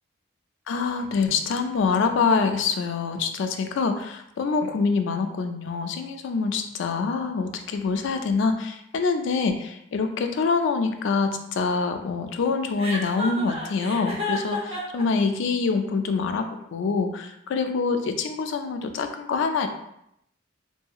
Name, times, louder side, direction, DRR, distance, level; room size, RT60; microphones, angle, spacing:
voice 1, 0.7-19.7, left 4 dB, 65° left, 7 dB, 0.3 m, -25 dB
Chuckle chortle, 12.8-15.0, left 2 dB, 30° right, 0.6 m, -31 dB
2.7 x 2.7 x 2.3 m, 0.78 s
head